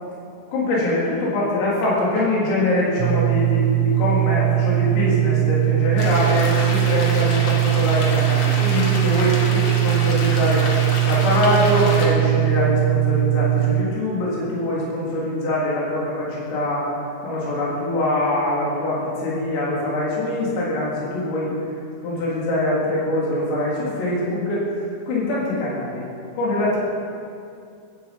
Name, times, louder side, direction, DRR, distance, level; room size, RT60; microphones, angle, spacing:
voice 1, 0.5-10.7 11.0-16.9 17.2-21.5 22.0-24.7 25.1-26.1 26.4-26.8, left 1 dB, 80° left, -6 dB, 6.6 m, -23 dB
sound 1, 3.0-13.8, right 19 dB, 90° right, 2.7 m, -20 dB
sound 2, 6.0-12.1, left 2 dB, 45° left, 2.5 m, -29 dB
16.0 x 15.5 x 5.5 m, 2.4 s
omnidirectional pair, 5.9 m